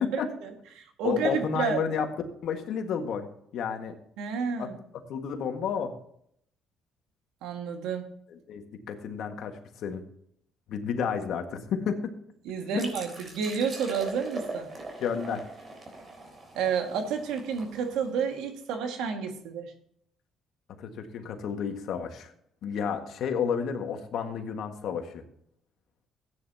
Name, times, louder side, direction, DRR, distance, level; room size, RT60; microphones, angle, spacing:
voice 1, 0.1-1.9 4.2-4.7 7.4-8.1 12.5-14.7 16.6-19.7, right 6 dB, 90° right, 5 dB, 1.9 m, -30 dB
voice 2, 1.0-2.1 2.4-3.3 3.5-3.9 4.6-4.7 5.1-5.9 8.3-8.6 8.9-9.5 9.8-10.0 10.7-12.1 12.7-12.8 15.0-15.4 20.8-22.3 22.6-25.1, left 7 dB, 65° left, 5 dB, 1.7 m, -31 dB
sound 1, 12.8-18.3, right 3 dB, 35° right, 3.8 m, -41 dB
15.0 x 9.6 x 2.9 m, 0.68 s
cardioid pair, 115°, 0 cm